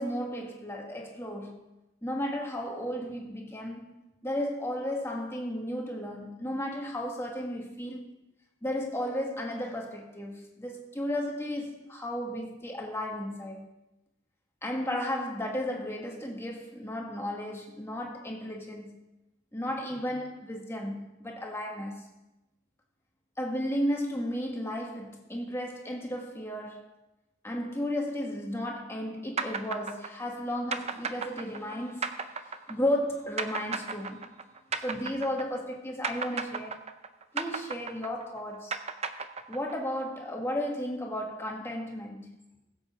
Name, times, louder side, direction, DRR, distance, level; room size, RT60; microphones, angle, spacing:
voice 1, 0.0-1.7 2.0-3.9 4.2-8.1 8.6-13.7 14.6-18.9 19.5-22.1 23.4-26.9 27.4-32.2 32.4-34.2 34.7-36.8 37.3-38.8 39.5-42.4, left 1 dB, 10° left, 1.6 m, -34 dB
sound 1, 29.4-35.7 36.0-39.9, right 5 dB, 30° right, 0.5 m, -35 dB
21.0 x 7.9 x 3.6 m
head